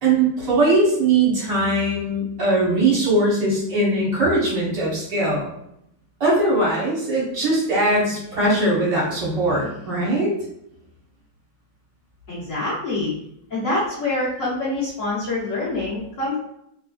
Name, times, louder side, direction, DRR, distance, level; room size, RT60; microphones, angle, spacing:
voice 1, 0.0-5.5 6.2-10.3, right 2 dB, 60° right, -6 dB, 1.7 m, -20 dB
voice 2, 12.3-13.1 13.5-16.3, left 2 dB, 50° left, -8 dB, 1.2 m, -25 dB
3.4 x 3.4 x 2.3 m, 0.75 s
omnidirectional pair, 2.1 m